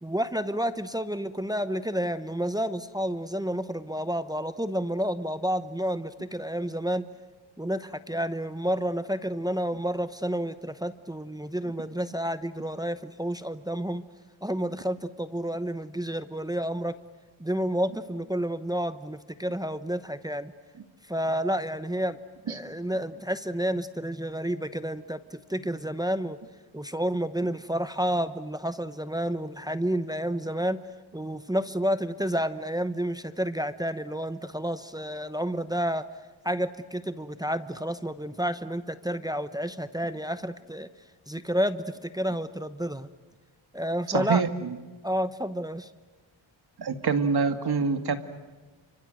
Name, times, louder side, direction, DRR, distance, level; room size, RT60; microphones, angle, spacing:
voice 1, 0.0-7.0 7.6-14.0 14.4-17.0 17.4-20.5 21.1-22.2 22.5-26.4 26.7-30.8 31.1-36.1 36.4-40.9 41.3-43.1 43.7-44.5 45.0-45.9, equal, 10° right, 11 dB, 0.9 m, -30 dB
voice 2, 44.1-44.5 46.8-48.2, right 5 dB, 50° right, 8 dB, 2.3 m, -25 dB
29.5 x 25.5 x 7.8 m, 1.3 s
cardioid pair, 105°, 49 cm